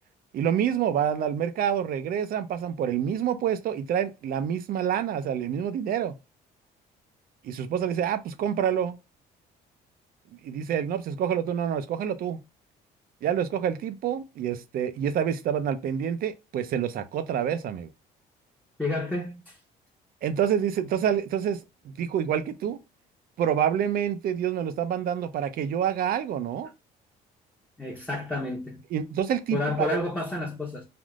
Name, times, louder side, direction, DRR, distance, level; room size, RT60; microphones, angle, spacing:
voice 1, 0.3-6.1 7.4-9.0 10.4-12.4 13.2-17.9 20.2-22.8 23.4-26.7 28.9-30.0, right 9 dB, 60° right, 0.5 m, -27 dB
voice 2, 18.8-19.6 27.8-28.8 29.5-30.8, left 2 dB, 10° left, 0.8 m, -30 dB
3.5 x 2.4 x 2.3 m
cardioid pair, 110°, 17 cm